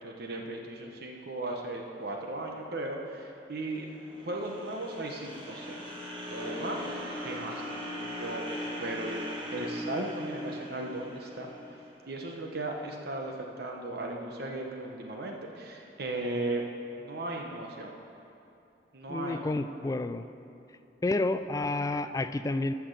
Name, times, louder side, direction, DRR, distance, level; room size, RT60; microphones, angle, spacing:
voice 1, 0.0-3.9 4.2-5.8 6.3-6.8 7.2-8.4 8.8-9.2 9.5-11.8 12.1-16.7 17.0-18.0 18.9-19.4, right 2 dB, 60° right, 1 dB, 1.0 m, -36 dB
sound 1, 3.8-12.0, left 1 dB, 30° right, 1.7 m, -39 dB
voice 2, 19.1-20.2 21.0-22.7, left 2 dB, 20° left, 11 dB, 0.3 m, -30 dB
14.0 x 5.9 x 6.6 m, 2.7 s
head